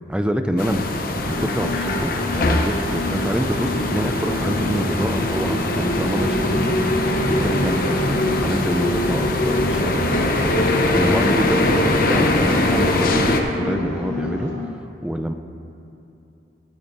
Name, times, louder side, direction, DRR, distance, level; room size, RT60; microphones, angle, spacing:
voice 1, 0.1-0.8 1.3-10.4 10.9-14.5 15.0-15.3, equal, 5° right, 7 dB, 0.4 m, -26 dB
sound 1, 0.6-13.4, left 1 dB, 55° left, 0.7 m, -22 dB
sound 2, 1.2-14.7, left 1 dB, 85° right, 2.3 m, -30 dB
14.0 x 9.7 x 2.6 m, 2.8 s
head